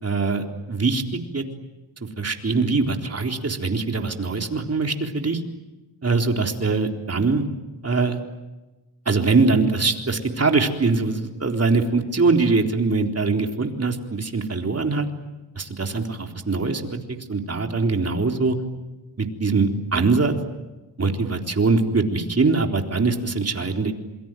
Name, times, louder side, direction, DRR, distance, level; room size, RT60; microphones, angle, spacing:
voice 1, 0.0-1.4 2.2-5.4 6.0-7.4 7.8-8.2 9.1-15.1 15.6-17.0 17.3-18.6 19.2-20.3 21.0-23.9, right 3 dB, 35° right, 3 dB, 3.9 m, -22 dB
27.5 x 23.5 x 9.2 m, 1.1 s
cardioid pair, 75°, 43 cm